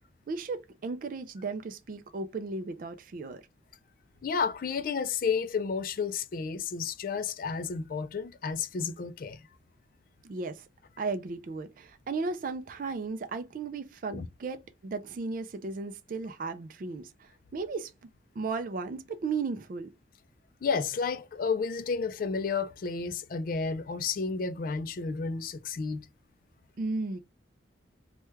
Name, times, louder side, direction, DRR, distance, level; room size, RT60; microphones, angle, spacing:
voice 1, 0.3-3.4 10.2-10.7 11.0-17.9 18.4-19.9 26.8-27.2, right 4 dB, 45° right, 0.3 m, -35 dB
voice 2, 4.2-9.5 14.1-14.3 20.6-26.0, left 5 dB, 45° left, 0.3 m, -31 dB
3.1 x 2.2 x 3.3 m
head